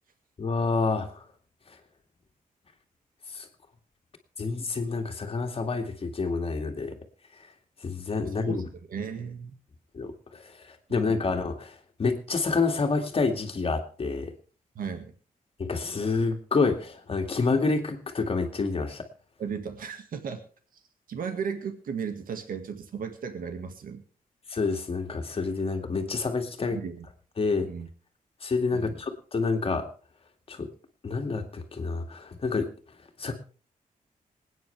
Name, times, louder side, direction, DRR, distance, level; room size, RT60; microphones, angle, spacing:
voice 1, 0.4-1.2 3.3-3.5 4.4-7.0 7.8-8.6 9.9-14.3 15.6-19.0 24.5-26.8 27.4-27.7 28.4-29.9 30.5-30.7 31.0-32.7 33.2-33.3, left 4 dB, 40° left, 5 dB, 2.3 m, -28 dB
voice 2, 8.2-8.6 8.9-9.5 10.9-11.2 14.8-15.1 19.4-20.4 21.1-24.0 26.7-27.1 27.6-27.9 28.7-28.9, right 6 dB, 75° right, 6 dB, 1.9 m, -35 dB
26.5 x 9.4 x 3.4 m, 0.40 s
wide cardioid pair, 135°, 15 cm